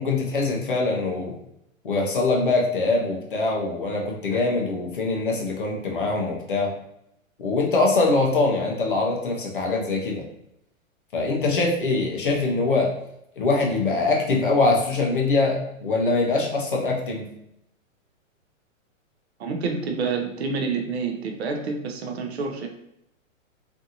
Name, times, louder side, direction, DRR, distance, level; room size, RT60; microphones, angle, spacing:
voice 1, 0.0-1.4 1.8-6.7 7.4-10.2 11.1-12.9 13.4-17.3, left 3 dB, 40° left, -1 dB, 0.5 m, -23 dB
voice 2, 19.4-22.7, right 4 dB, 55° right, 3 dB, 0.4 m, -28 dB
2.6 x 2.5 x 2.7 m, 0.78 s
hypercardioid pair, 180°, 41 cm